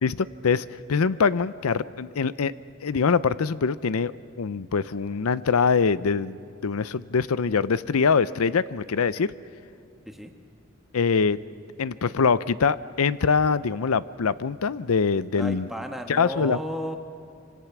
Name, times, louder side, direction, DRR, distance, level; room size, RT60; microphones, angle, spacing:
voice 1, 0.0-2.5 2.8-4.1 4.4-9.3 10.9-11.4 11.8-15.7 16.1-16.6, left 5 dB, 90° left, 16 dB, 0.6 m, -23 dB
voice 2, 15.4-17.0, equal, ahead, 3 dB, 1.3 m, -33 dB
26.0 x 25.5 x 6.0 m, 2.5 s
head